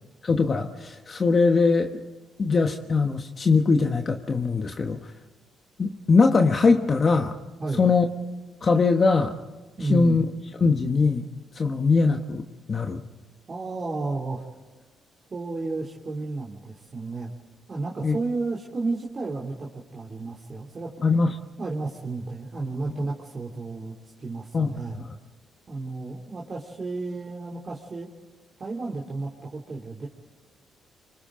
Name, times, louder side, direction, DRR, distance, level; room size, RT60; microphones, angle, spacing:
voice 1, 0.2-2.0 2.4-5.1 5.8-7.4 7.8-8.1 8.6-9.4 9.9-10.3 10.6-11.3 11.5-13.0 18.0-18.2 21.0-21.3 22.9-23.0 24.5-25.1, left 4 dB, 40° left, 5 dB, 1.3 m, -21 dB
voice 2, 9.8-10.2 13.5-14.4 15.3-17.3 17.7-21.0 21.6-25.0 25.7-28.1 28.6-30.1, right 3 dB, 35° right, -3 dB, 3.0 m, -32 dB
27.0 x 25.0 x 3.9 m, 1.2 s
cardioid pair, 90°, 0 cm